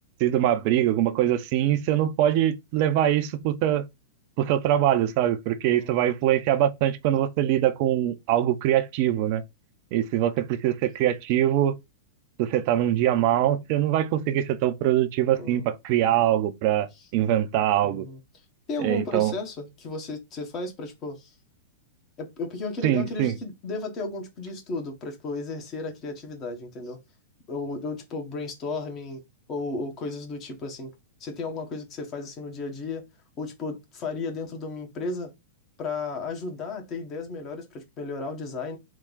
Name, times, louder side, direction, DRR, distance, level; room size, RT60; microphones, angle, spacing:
voice 1, 0.2-3.8 4.4-9.4 9.9-11.7 12.4-16.9 17.1-18.1 18.8-19.3 22.8-23.3, right 12 dB, 50° right, 0.6 m, -23 dB
voice 2, 15.4-15.7 17.8-18.2 18.7-21.3 22.2-27.0 27.5-29.2 29.5-30.9 31.2-33.0 33.4-35.3 35.8-38.8, left 3 dB, 35° left, 1.2 m, -34 dB
3.6 x 2.3 x 3.8 m
figure-of-eight pair, 100°, 0 cm